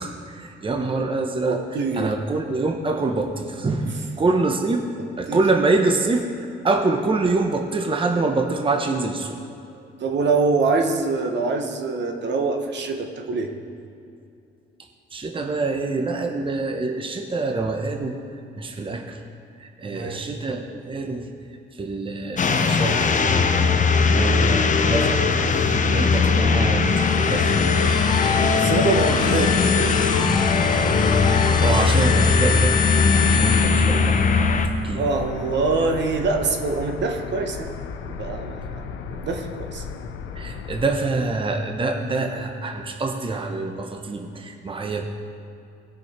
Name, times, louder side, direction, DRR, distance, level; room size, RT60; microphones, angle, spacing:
voice 1, 0.0-1.6 1.9-4.9 5.2-6.3 6.6-9.4 15.1-18.2 18.6-19.2 19.8-21.3 21.8-23.6 24.2-25.2 25.8-26.9 27.2-27.5 31.6-32.8 33.3-34.2 34.8-35.0 40.4-45.1, right 3 dB, 25° right, 4 dB, 0.9 m, -25 dB
voice 2, 1.5-2.1 5.3-5.4 9.7-13.5 19.9-20.2 28.5-30.0 34.6-34.7 35.0-37.7 38.1-38.6 39.1-39.8, right 3 dB, 65° right, 4 dB, 1.2 m, -24 dB
sound 1, 22.4-34.7, left 4 dB, 40° left, 0.8 m, -19 dB
sound 2, 25.9-40.9, left 6 dB, 85° left, 0.7 m, -36 dB
sound 3, 26.8-34.5, left 6 dB, 20° left, 0.3 m, -27 dB
18.5 x 6.4 x 4.4 m, 2.6 s
cardioid pair, 90°, 20 cm